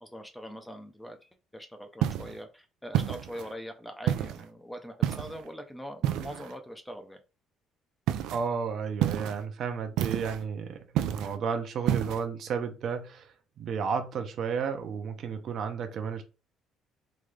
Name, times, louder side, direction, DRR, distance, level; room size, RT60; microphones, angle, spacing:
voice 1, 0.0-7.2, equal, 5° left, 6 dB, 0.5 m, -42 dB
sound 1, 2.0-2.4 2.9-3.5 4.1-4.5 5.0-5.4 6.0-6.5 8.1-8.4 9.0-9.4 10.0-10.4 11.0-11.4 11.9-12.2, right 11 dB, 80° right, 0.4 m, -29 dB
voice 2, 8.3-16.2, right 6 dB, 50° right, 7 dB, 0.7 m, -32 dB
3.8 x 3.3 x 3.2 m, 0.32 s
cardioid pair, 155°, 0 cm